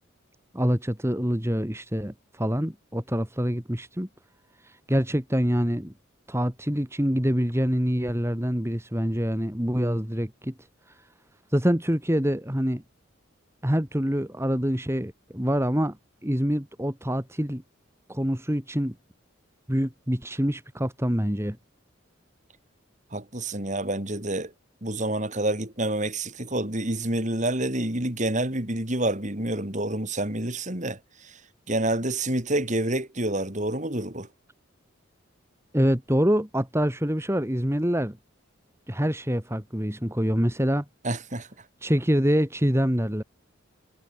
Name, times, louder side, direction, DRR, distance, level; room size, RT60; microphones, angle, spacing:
voice 1, 0.5-4.1 4.6-5.9 6.3-10.5 10.9-11.0 11.5-12.8 13.6-16.0 16.2-17.6 18.1-18.9 19.7-21.6 35.7-38.2 38.9-40.9 41.8-43.2, equal, 10° right, 2.4 m, -25 dB
voice 2, 23.1-24.5 24.8-31.4 31.7-34.3 41.0-41.5, right 1 dB, 35° right, 3.7 m, -28 dB
head